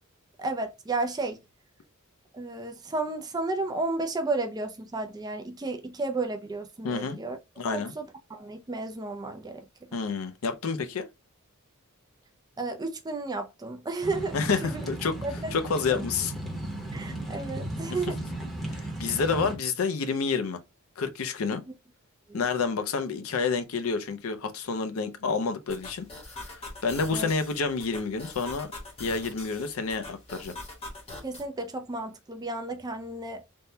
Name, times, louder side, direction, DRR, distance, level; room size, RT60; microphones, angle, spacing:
voice 1, 0.4-1.4 2.3-7.4 7.7-9.6 12.6-14.4 14.6-14.8 15.2-15.5 15.9-16.0 16.9-18.1 19.0-19.2 22.3-22.5 27.1-27.3 31.2-33.4, right 3 dB, 20° right, 0.4 m, -32 dB
voice 2, 6.8-7.2 7.6-7.9 9.9-11.1 14.3-15.1 15.5-16.3 18.7-20.6 21.0-21.6 22.3-26.0 26.3-28.7 29.0-30.5, left 4 dB, 70° left, 0.5 m, -29 dB
sound 1, 14.0-19.6, right 1 dB, ahead, 0.8 m, -35 dB
sound 2, 25.7-31.5, left 2 dB, 30° left, 1.0 m, -43 dB
3.5 x 2.1 x 2.7 m
head